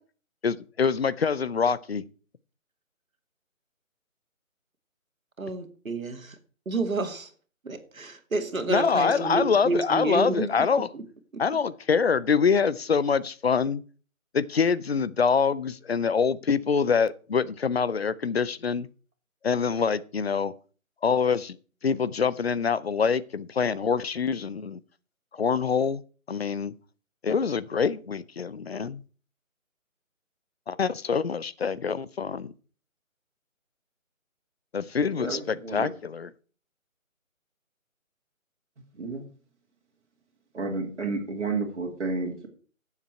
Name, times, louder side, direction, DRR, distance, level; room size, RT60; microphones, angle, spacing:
voice 1, 0.4-2.0 8.7-10.9 11.4-13.8 14.3-18.9 19.4-20.5 21.0-21.6 21.8-24.8 25.3-26.0 26.3-26.7 27.2-29.0 30.7-32.5 34.7-36.3, left 6 dB, 50° left, 0.6 m, -25 dB
voice 2, 5.4-6.4 6.7-7.3 7.6-10.5 10.9-11.0 11.3-11.4, right 3 dB, 75° right, 2.2 m, -29 dB
voice 3, 35.2-35.9 39.0-39.2 40.5-42.5, right 3 dB, 55° right, 2.7 m, -31 dB
12.0 x 7.4 x 4.5 m
figure-of-eight pair, 155°, 41 cm